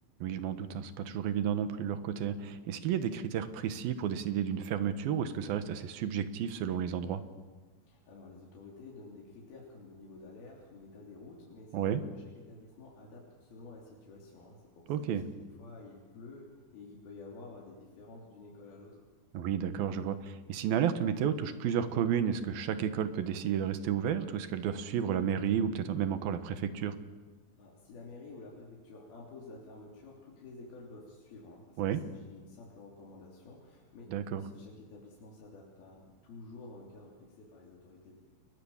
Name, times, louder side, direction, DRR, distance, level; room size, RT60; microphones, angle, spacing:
voice 1, 0.2-7.2 11.7-12.0 14.9-15.2 19.3-27.0 31.8-32.0 34.1-34.4, right 8 dB, 80° right, 11 dB, 3.2 m, -32 dB
voice 2, 7.8-19.1 27.6-38.2, left 3 dB, 90° left, -3 dB, 5.3 m, -51 dB
29.5 x 21.0 x 7.3 m, 1.4 s
omnidirectional pair, 4.2 m